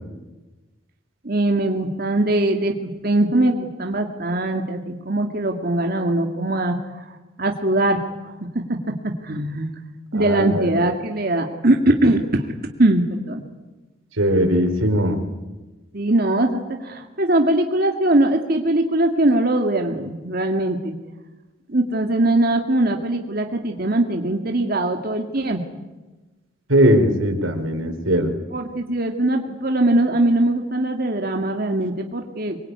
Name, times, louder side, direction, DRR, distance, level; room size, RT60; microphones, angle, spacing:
voice 1, 1.2-2.8 3.0-7.1 7.4-8.0 8.5-8.8 9.2-9.7 10.1-12.5 12.8-13.4 15.9-20.9 21.7-25.6 28.5-32.6, right 1 dB, 50° right, 3 dB, 2.3 m, -21 dB
voice 2, 10.1-10.7 14.2-15.2 26.7-28.3, equal, 90° right, 6 dB, 4.3 m, -19 dB
25.0 x 23.5 x 9.7 m, 1.2 s
head